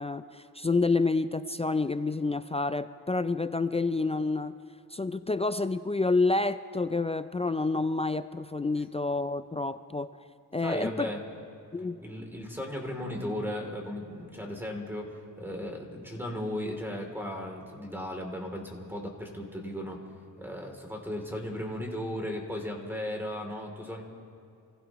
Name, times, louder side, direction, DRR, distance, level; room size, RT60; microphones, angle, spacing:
voice 1, 0.0-4.5 4.9-10.1 10.5-11.1 11.7-12.0, left 3 dB, 15° left, 12 dB, 0.4 m, -28 dB
voice 2, 10.6-11.2 12.0-20.0 20.4-24.0, left 1 dB, 5° right, 1 dB, 3.0 m, -36 dB
27.5 x 16.0 x 3.1 m, 2.6 s
cardioid pair, 90°, 38 cm